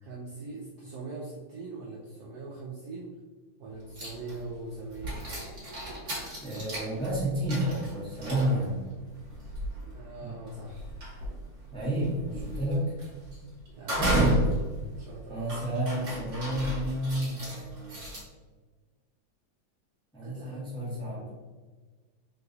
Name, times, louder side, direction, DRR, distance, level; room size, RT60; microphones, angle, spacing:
voice 1, 0.0-3.1 3.6-5.2 9.9-11.0 13.7-14.4 14.8-15.5 20.2-21.3, right 3 dB, 80° right, -2 dB, 0.9 m, -42 dB
sound 1, 4.0-4.5 4.9-18.2, right 1 dB, 40° right, 1.6 m, -34 dB
voice 2, 6.4-8.8 10.2-10.3 11.7-12.9 14.0-14.5 15.3-18.1 20.1-21.2, right 1 dB, 5° left, -8 dB, 0.8 m, -30 dB
3.8 x 2.6 x 3.9 m, 1.4 s
omnidirectional pair, 2.3 m